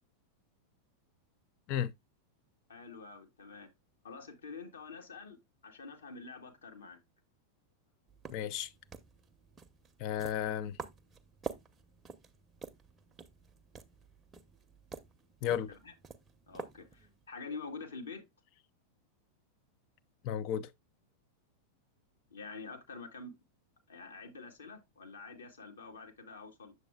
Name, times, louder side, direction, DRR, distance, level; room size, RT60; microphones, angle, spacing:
voice 1, 2.7-3.7 4.0-5.4 5.6-7.0 15.7-15.9 16.5-18.3 22.3-23.4 23.9-26.7, left 4 dB, 65° left, 1.4 m, -47 dB
sound 1, 8.1-17.3, right 5 dB, 20° right, 0.8 m, -49 dB
voice 2, 8.3-8.7 10.0-10.8 15.4-15.7 20.2-20.7, left 9 dB, 40° left, 0.5 m, -33 dB
7.9 x 6.9 x 2.3 m
figure-of-eight pair, 90°, 0 cm